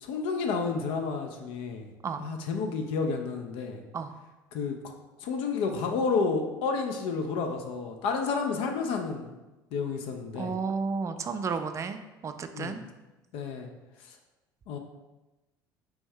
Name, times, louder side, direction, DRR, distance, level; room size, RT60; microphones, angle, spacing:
voice 1, 0.0-1.9 2.2-3.8 4.5-4.8 5.2-9.3 9.7-10.6 12.5-12.8 13.3-13.7 14.1-14.2 14.7-14.8, left 4 dB, 60° left, 4 dB, 0.5 m, -30 dB
voice 2, 10.4-12.8, right 5 dB, 25° right, 8 dB, 0.4 m, -32 dB
4.6 x 2.6 x 3.2 m, 1.1 s
figure-of-eight pair, 65°, 11 cm